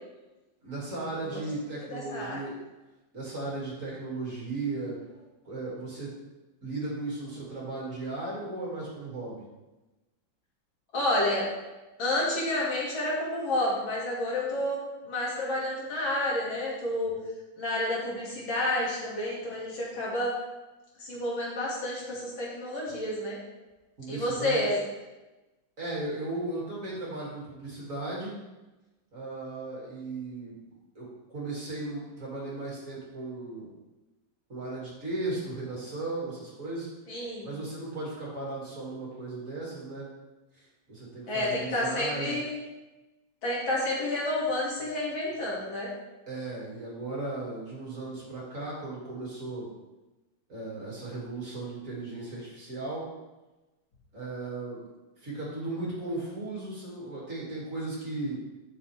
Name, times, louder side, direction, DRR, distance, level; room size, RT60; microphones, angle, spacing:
voice 1, 0.6-2.6 3.1-5.0 5.4-6.1 6.6-9.4 24.0-24.6 25.8-28.3 29.1-30.6 30.9-33.7 34.5-36.9 37.4-40.1 40.5-42.4 46.3-49.7 50.5-53.1 54.1-54.8 55.2-58.4, right 2 dB, 40° right, -5 dB, 3.1 m, -36 dB
voice 2, 1.9-2.4 10.9-11.5 12.0-17.1 17.6-20.3 21.0-23.4 24.1-24.8 37.1-37.5 41.3-42.6 43.4-45.9, left 1 dB, 80° left, -5 dB, 3.4 m, -30 dB
11.0 x 7.0 x 3.6 m, 1.1 s
omnidirectional pair, 2.1 m